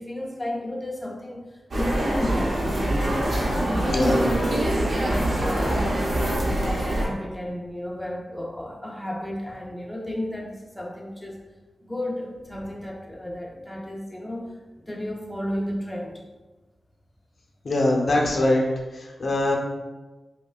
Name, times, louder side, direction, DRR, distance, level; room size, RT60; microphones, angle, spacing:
voice 1, 0.0-2.6 3.0-6.4 6.7-11.4 11.8-16.2, left 1 dB, 5° left, -1 dB, 0.5 m, -33 dB
sound 1, 1.7-7.1, right 1 dB, 50° right, 0.8 m, -24 dB
voice 2, 3.9-4.2 17.6-18.6 19.2-19.6, left 1 dB, 65° left, -1 dB, 0.6 m, -21 dB
5.3 x 2.2 x 2.4 m, 1.2 s
wide cardioid pair, 100°, 0 cm